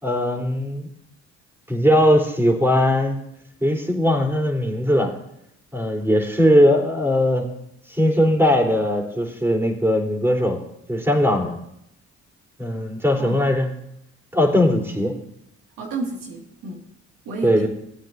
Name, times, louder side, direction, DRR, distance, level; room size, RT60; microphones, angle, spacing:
voice 1, 0.0-0.9 1.7-3.2 3.6-5.1 5.7-7.5 7.9-10.6 10.9-11.6 12.6-13.7 14.3-15.1 17.4-17.7, equal, 10° right, -1 dB, 3.6 m, -19 dB
voice 2, 13.2-13.5 15.8-16.8 17.2-17.7, right 3 dB, 85° right, -1 dB, 2.2 m, -31 dB
18.0 x 8.9 x 2.7 m, 0.76 s
supercardioid pair, 60°, 32 cm